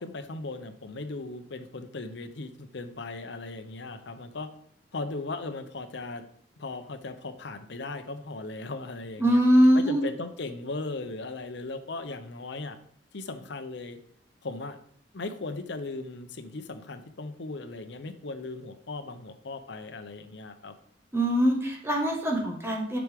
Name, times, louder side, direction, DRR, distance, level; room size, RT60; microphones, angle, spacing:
voice 1, 0.0-4.5 4.9-6.2 6.6-9.4 9.7-12.8 13.1-14.0 14.4-14.8 15.1-20.7, left 3 dB, 70° left, 9 dB, 0.8 m, -37 dB
voice 2, 9.2-10.0 21.1-23.0, equal, 15° right, 0 dB, 1.4 m, -22 dB
7.8 x 6.2 x 3.5 m, 0.64 s
head